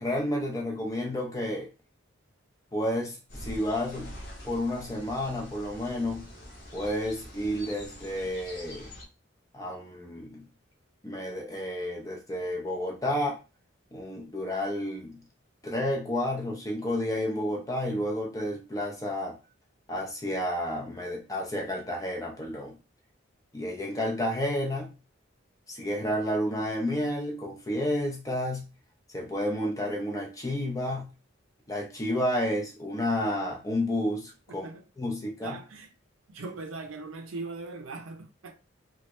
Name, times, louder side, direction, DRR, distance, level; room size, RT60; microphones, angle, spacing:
voice 1, 0.0-1.7 2.7-4.2 4.4-6.3 6.7-8.9 9.5-10.5 11.0-13.4 13.9-15.2 15.6-19.4 19.9-22.8 23.5-24.9 25.7-28.6 29.1-31.1 31.7-34.7 35.0-35.6, left 1 dB, 15° left, 0.6 m, -31 dB
sound 1, 3.3-9.0, equal, 55° left, 1.1 m, -45 dB
voice 2, 34.5-34.8 35.4-35.9 36.3-38.5, right 3 dB, 80° right, 0.6 m, -40 dB
3.1 x 2.4 x 3.0 m
head